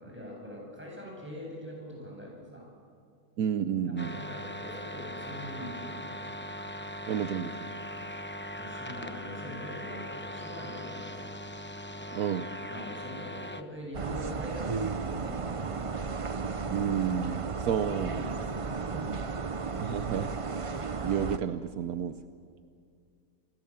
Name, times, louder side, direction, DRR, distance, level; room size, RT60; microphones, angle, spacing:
voice 1, 0.0-2.7 3.9-6.4 8.6-11.4 12.7-16.0 17.6-19.5, equal, 5° right, -2 dB, 7.7 m, -43 dB
voice 2, 3.4-4.1 7.1-7.7 12.1-12.5 16.7-18.1 19.8-20.3 20.6-20.7 21.0-22.1, right 8 dB, 75° right, 10 dB, 1.3 m, -30 dB
sound 1, 4.0-13.6, equal, 10° left, 0.6 m, -40 dB
sound 2, 13.9-21.4, right 4 dB, 35° right, 0.5 m, -34 dB
27.5 x 21.5 x 7.4 m, 2.3 s
omnidirectional pair, 1.6 m